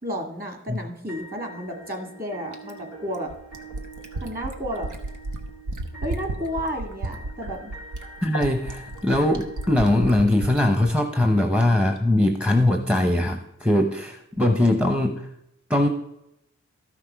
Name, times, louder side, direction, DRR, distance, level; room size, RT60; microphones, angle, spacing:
voice 1, 0.0-3.3 4.2-4.9 6.0-7.7, equal, 30° right, 3 dB, 2.0 m, -32 dB
sound 1, 1.1-11.1, right 3 dB, 65° right, 3.3 m, -45 dB
Fill (with liquid), 2.5-10.6 12.0-12.1, right 2 dB, 90° right, 1.1 m, -33 dB
voice 2, 8.2-15.3 15.7-15.9, left 1 dB, 5° right, 5 dB, 0.7 m, -21 dB
13.0 x 5.9 x 4.6 m, 0.83 s
wide cardioid pair, 85°, 29 cm